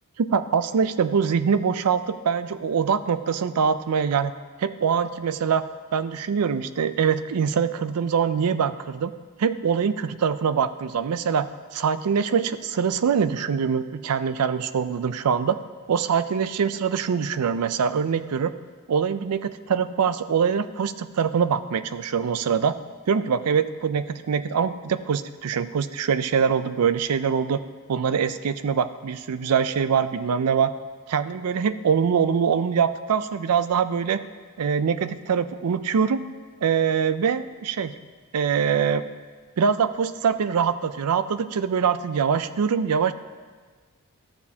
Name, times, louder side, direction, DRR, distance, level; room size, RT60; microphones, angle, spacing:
voice 1, 0.2-4.3 4.6-5.6 5.9-9.1 9.4-11.5 11.7-15.6 15.9-18.5 18.9-22.7 23.1-27.6 27.9-30.7 31.1-34.2 34.6-36.2 36.6-37.9 38.3-39.1 39.6-43.1, right 6 dB, 85° right, 13 dB, 0.4 m, -23 dB
13.0 x 7.0 x 2.8 m, 1.5 s
head